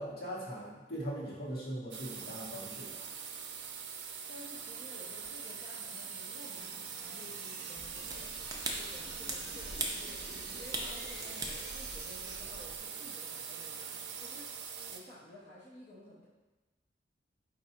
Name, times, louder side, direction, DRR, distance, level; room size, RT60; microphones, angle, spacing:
voice 1, 0.0-3.1, equal, 60° left, -6 dB, 1.3 m, -40 dB
sound 1, 1.9-15.0, right 7 dB, 80° right, 0.4 m, -43 dB
voice 2, 4.3-16.3, left 1 dB, 40° left, -9 dB, 0.7 m, -53 dB
sound 2, 4.4-12.2, equal, ahead, 1.2 m, -51 dB
sound 3, 7.7-12.8, right 2 dB, 20° right, 0.5 m, -42 dB
4.7 x 2.6 x 4.2 m, 1.1 s
head